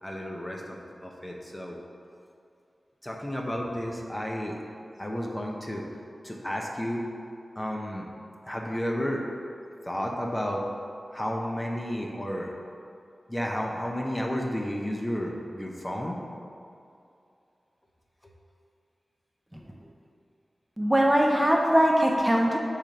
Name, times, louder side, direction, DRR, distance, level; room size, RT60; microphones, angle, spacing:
voice 1, 0.0-1.8 3.0-4.6 5.0-7.0 7.6-8.1 8.4-9.2 9.8-10.7 11.1-12.5 13.3-16.2 18.2-18.3, equal, 20° left, 0 dB, 0.9 m, -32 dB
voice 2, 20.8-22.6, equal, 10° right, 0 dB, 0.8 m, -22 dB
5.9 x 4.4 x 5.3 m, 2.5 s
cardioid pair, 45°, 0 cm